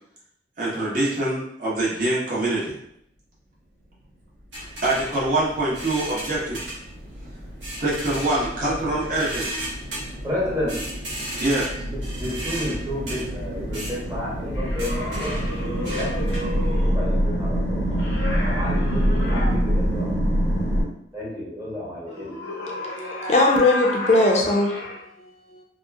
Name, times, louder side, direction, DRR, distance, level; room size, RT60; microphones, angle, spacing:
voice 1, 0.6-2.7 4.8-6.6 7.7-9.4 11.4-11.7, right 2 dB, 45° right, -7 dB, 1.1 m, -24 dB
sound 1, 4.5-16.8, right 1 dB, 85° right, 1.1 m, -36 dB
sound 2, 5.8-20.8, equal, 65° right, 1.3 m, -26 dB
voice 2, 10.2-10.8 11.8-16.3 16.6-18.0 18.4-20.1 21.1-22.3, left 1 dB, 15° right, -7 dB, 0.9 m, -31 dB
sound 3, 14.5-17.0 18.0-19.5 22.1-25.0, left 1 dB, 75° left, 0.6 m, -32 dB
voice 3, 22.4-25.6, left 2 dB, 40° left, 0 dB, 0.5 m, -22 dB
2.8 x 2.5 x 2.3 m, 0.74 s
head